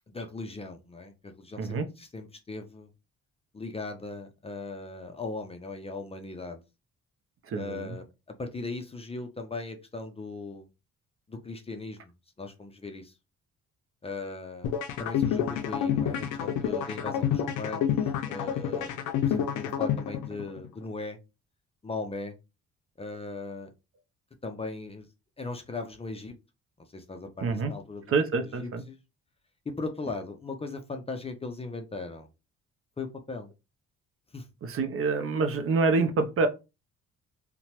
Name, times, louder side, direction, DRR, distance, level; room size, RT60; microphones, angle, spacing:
voice 1, 0.1-2.9 3.5-6.6 7.5-8.0 8.4-10.7 11.3-12.1 12.4-13.1 14.0-14.7 15.0-21.2 21.8-22.4 23.0-23.7 24.4-25.1 25.4-26.3 26.9-28.1 28.4-29.0 29.7-32.3 33.0-33.5 34.3-34.5, left 3 dB, 20° left, 0.4 m, -38 dB
voice 2, 7.5-7.9 27.4-27.7 28.1-28.8 34.6-36.5, right 4 dB, 45° right, 0.5 m, -26 dB
sound 1, 14.6-20.7, left 9 dB, 85° left, 0.5 m, -28 dB
2.8 x 2.1 x 2.8 m
cardioid pair, 90°, 30 cm